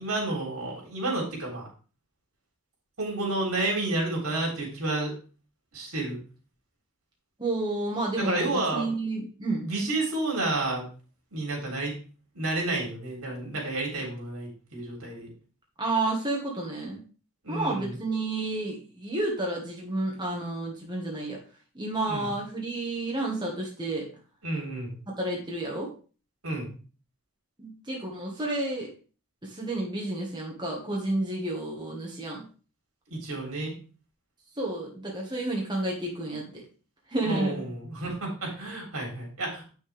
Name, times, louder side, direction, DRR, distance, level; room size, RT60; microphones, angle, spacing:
voice 1, 0.0-1.7 3.0-5.1 5.7-6.2 8.2-9.0 9.6-10.9 11.3-11.9 12.3-15.3 17.4-18.0 22.1-22.3 24.4-25.0 26.4-26.7 33.1-33.7 37.2-39.7, right 2 dB, 75° right, -1 dB, 3.6 m, -30 dB
voice 2, 7.4-9.6 15.8-17.0 17.5-21.4 21.7-24.1 25.2-25.9 27.6-28.9 29.4-32.4 34.6-36.6 37.1-37.7, right 2 dB, 20° right, -2 dB, 1.6 m, -30 dB
8.1 x 6.4 x 3.5 m, 0.38 s
head